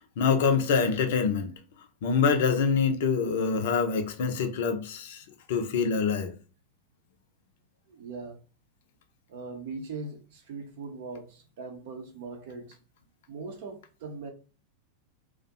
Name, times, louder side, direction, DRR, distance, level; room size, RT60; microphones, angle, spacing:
voice 1, 0.2-1.5 2.0-5.2 5.5-6.3, left 5 dB, 55° left, 0.5 m, -25 dB
voice 2, 7.9-8.4 9.3-12.8 13.3-14.3, right 4 dB, 55° right, 0.5 m, -40 dB
2.4 x 2.1 x 2.7 m
figure-of-eight pair, 90°, 0 cm